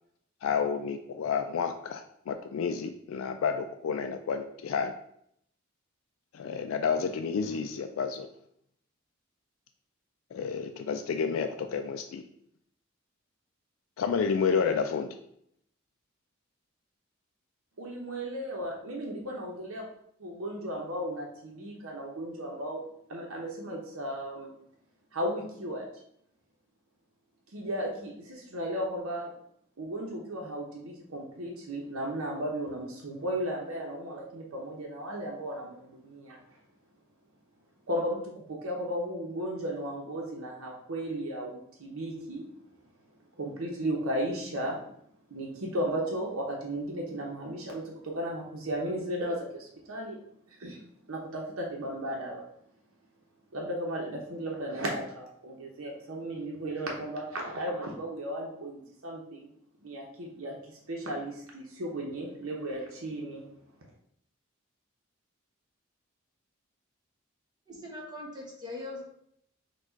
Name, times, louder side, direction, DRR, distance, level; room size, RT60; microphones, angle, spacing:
voice 1, 0.4-4.9 6.3-8.3 10.3-12.2 14.0-15.1, left 6 dB, 75° left, 7 dB, 0.3 m, -30 dB
voice 2, 17.8-19.8 20.2-22.8 23.1-24.5 25.1-25.8 27.5-29.3 29.8-36.4 37.9-42.5 43.4-44.8 45.3-50.2 50.5-50.8 51.1-52.4 53.5-59.5 59.8-63.5, right 1 dB, 85° right, -1 dB, 0.8 m, -35 dB
voice 3, 67.7-69.2, left 2 dB, 20° right, -2 dB, 1.1 m, -41 dB
4.5 x 2.4 x 4.4 m, 0.71 s
head